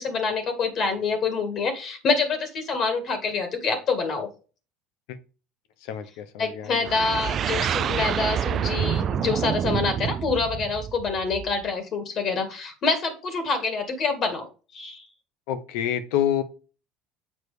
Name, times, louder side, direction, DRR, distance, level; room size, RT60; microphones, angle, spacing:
voice 1, 0.0-4.3 6.4-15.0, left 4 dB, 50° left, 7 dB, 2.1 m, -26 dB
voice 2, 5.8-6.9 15.5-16.4, left 10 dB, 70° left, 10 dB, 1.2 m, -27 dB
sound 1, 6.8-11.7, right 9 dB, 45° right, 0.4 m, -27 dB
7.4 x 4.6 x 5.0 m, 0.34 s
hypercardioid pair, 70°, 0 cm